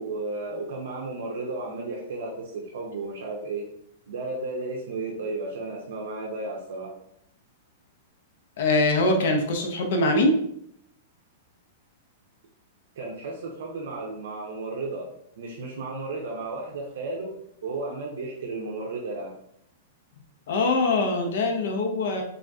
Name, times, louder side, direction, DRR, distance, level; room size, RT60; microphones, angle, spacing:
voice 1, 0.0-3.7 4.1-7.0 13.0-15.1 15.4-19.3, right 3 dB, 75° right, -2 dB, 0.6 m, -33 dB
voice 2, 8.6-10.4 20.5-22.2, left 2 dB, 55° left, 3 dB, 0.5 m, -23 dB
3.4 x 2.5 x 2.3 m, 0.71 s
supercardioid pair, 175°, 0 cm